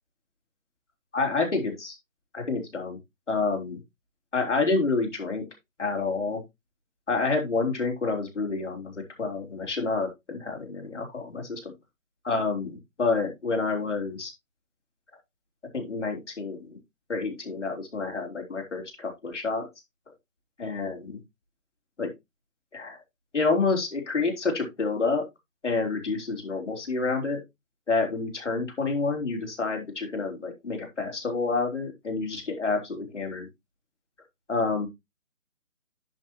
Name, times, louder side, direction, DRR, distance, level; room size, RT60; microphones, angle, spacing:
voice 1, 1.1-1.9 2.3-3.0 3.3-3.8 4.3-5.4 5.8-6.4 7.1-8.9 9.2-11.7 12.2-14.3 15.7-16.8 17.1-19.7 20.6-21.2 22.0-22.1 22.7-23.0 23.3-25.2 25.6-27.4 27.9-33.5 34.5-34.9, left 3 dB, 55° left, 2 dB, 3.7 m, -28 dB
11.5 x 5.9 x 2.9 m, 0.20 s
figure-of-eight pair, 165°, 41 cm